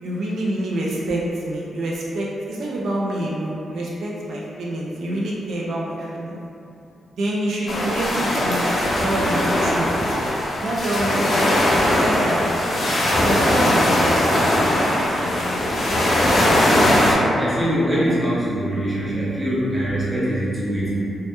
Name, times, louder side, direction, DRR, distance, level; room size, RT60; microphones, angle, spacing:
voice 1, 0.0-6.4 7.2-8.6 9.0-9.8 10.6-12.5 13.2-14.5 14.8-15.7, right 1 dB, 70° right, -5 dB, 0.3 m, -27 dB
sound 1, 7.7-17.1, left 1 dB, 50° left, 0.4 m, -20 dB
voice 2, 16.4-21.1, equal, 5° right, -10 dB, 0.7 m, -23 dB
2.1 x 2.1 x 2.8 m, 2.7 s
wide cardioid pair, 140°, 0 cm